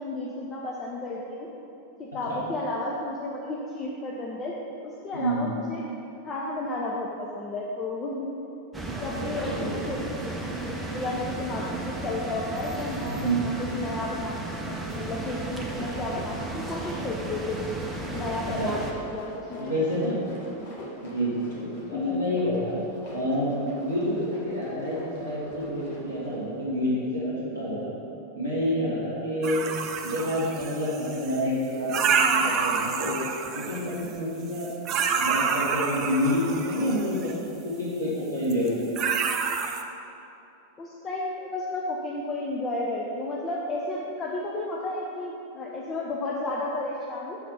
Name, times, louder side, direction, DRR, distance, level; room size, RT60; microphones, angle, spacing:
voice 1, 0.0-1.5 2.0-4.5 4.8-5.8 6.2-8.3 9.0-17.7 18.1-19.7 20.1-20.4 21.9-22.3 40.8-47.4, left 2 dB, 25° left, -3 dB, 0.7 m, -33 dB
voice 2, 5.1-5.5 8.9-9.7 13.1-13.4 18.6-18.7 19.6-20.2 21.0-22.8 23.1-27.9 28.3-29.6 30.0-33.2 33.5-34.7 35.2-37.3 37.6-39.0, equal, 85° left, -10 dB, 1.3 m, -28 dB
sound 1, 8.7-18.9, right 2 dB, 10° right, 0.8 m, -34 dB
sound 2, 17.9-26.5, left 1 dB, 50° left, 1.5 m, -44 dB
sound 3, 29.4-31.4 31.9-34.1 34.5-37.3 38.5-38.7 39.0-39.8, right 6 dB, 35° right, 0.5 m, -28 dB
6.5 x 4.2 x 5.7 m, 2.8 s
figure-of-eight pair, 90°, 0 cm